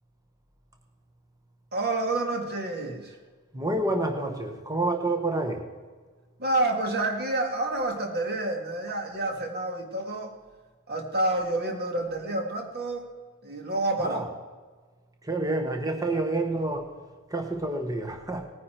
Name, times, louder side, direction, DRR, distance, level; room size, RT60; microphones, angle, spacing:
voice 1, 1.7-3.1 6.4-10.3 10.9-13.1 13.4-14.3, right 2 dB, 45° right, 3 dB, 1.9 m, -28 dB
voice 2, 3.5-5.6 14.0-14.3 15.2-16.9 17.3-18.5, right 2 dB, 15° right, 3 dB, 1.1 m, -28 dB
18.5 x 9.5 x 4.5 m, 1.4 s
head